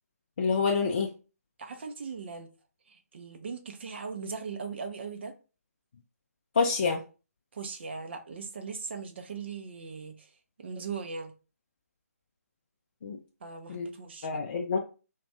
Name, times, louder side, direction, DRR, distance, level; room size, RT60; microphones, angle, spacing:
voice 1, 0.4-1.1 6.6-7.0 13.0-13.2 13.7-13.9 14.2-14.8, left 5 dB, 40° left, 0.4 m, -27 dB
voice 2, 1.6-2.5 2.9-5.3 7.5-10.3 10.6-11.3 13.4-14.4, right 5 dB, 45° right, 0.5 m, -39 dB
2.4 x 2.2 x 3.3 m
figure-of-eight pair, 145°, 9 cm